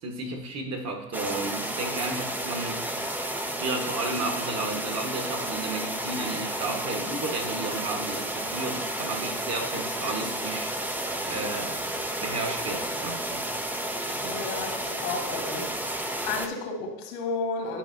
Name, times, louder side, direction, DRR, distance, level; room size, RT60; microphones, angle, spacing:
voice 1, 0.0-2.8 3.6-10.7 11.3-11.8 12.2-13.4 14.1-14.4, right 3 dB, 40° right, 4 dB, 1.2 m, -33 dB
sound 1, 1.1-16.5, right 1 dB, 5° right, 0.4 m, -32 dB
voice 2, 14.2-15.7 16.2-17.8, left 4 dB, 80° left, 2 dB, 1.6 m, -32 dB
10.5 x 4.7 x 2.6 m, 0.91 s
hypercardioid pair, 85°, 42 cm